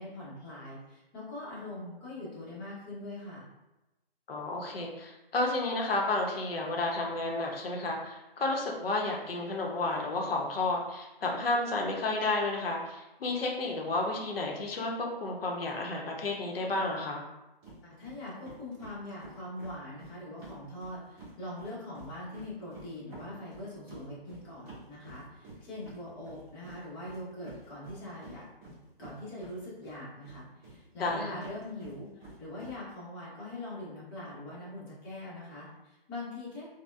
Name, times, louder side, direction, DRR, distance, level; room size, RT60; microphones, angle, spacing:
voice 1, 0.0-3.5 17.8-28.5 29.0-36.7, left 1 dB, 20° left, -7 dB, 0.9 m, -42 dB
voice 2, 4.3-17.2 31.0-31.4, left 2 dB, 70° left, 0 dB, 0.8 m, -31 dB
sound 1, 17.6-17.8 18.0-18.2 18.4-21.3 21.6-30.0 30.2-32.7, right 2 dB, 20° right, 1.3 m, -49 dB
4.1 x 2.1 x 2.4 m, 0.99 s
hypercardioid pair, 150°, 30 cm